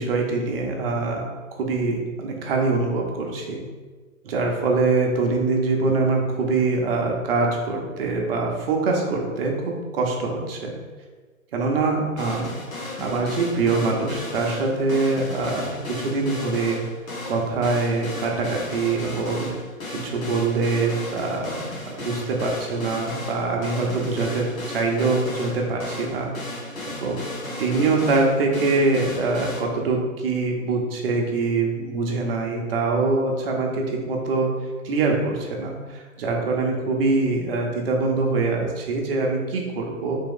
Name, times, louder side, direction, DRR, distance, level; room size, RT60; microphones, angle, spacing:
voice 1, 0.0-3.6 4.2-10.7 11.5-12.6 13.0-16.8 17.3-19.6 19.9-26.3 26.8-27.2 27.6-34.5 34.8-40.2, right 3 dB, 40° right, 0 dB, 0.9 m, -24 dB
sound 1, 12.2-29.6, left 2 dB, 70° left, 1.4 m, -35 dB
3.5 x 3.3 x 3.8 m, 1.4 s
figure-of-eight pair, 120°, 42 cm